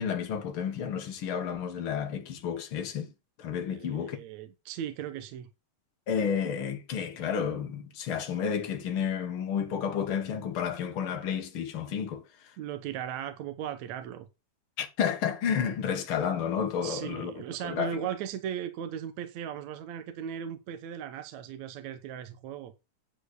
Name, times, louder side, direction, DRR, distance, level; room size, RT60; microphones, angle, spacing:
voice 1, 0.0-3.1 3.4-4.2 6.1-12.5 14.8-17.3 17.6-17.9, left 7 dB, 50° left, 1.8 m, -31 dB
voice 2, 3.7-5.5 12.6-14.3 16.8-22.7, right 9 dB, 70° right, 2.0 m, -37 dB
10.0 x 4.5 x 6.3 m
omnidirectional pair, 3.8 m